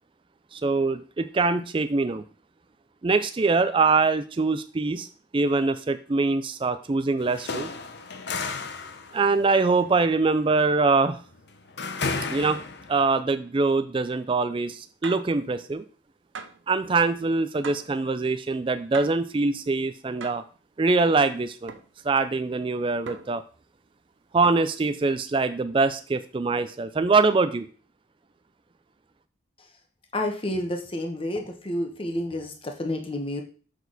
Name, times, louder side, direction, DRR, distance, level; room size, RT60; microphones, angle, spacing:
voice 1, 0.5-2.2 3.0-5.1 5.3-7.7 9.1-11.2 12.3-12.6 12.9-15.8 16.7-20.4 20.8-21.7 22.0-23.4 24.3-27.7, right 3 dB, 25° right, 10 dB, 0.4 m, -23 dB
sound 1, 7.2-13.1, left 4 dB, 60° left, 0.8 m, -34 dB
sound 2, 15.0-15.3 16.3-16.7 17.6-18.0 18.9-19.3 20.2-20.5 21.7-21.9 23.1-23.5 24.4-24.8, right 5 dB, 75° right, 0.7 m, -40 dB
voice 2, 30.1-33.4, left 1 dB, 30° left, 3 dB, 1.2 m, -30 dB
7.0 x 6.2 x 4.0 m, 0.40 s
head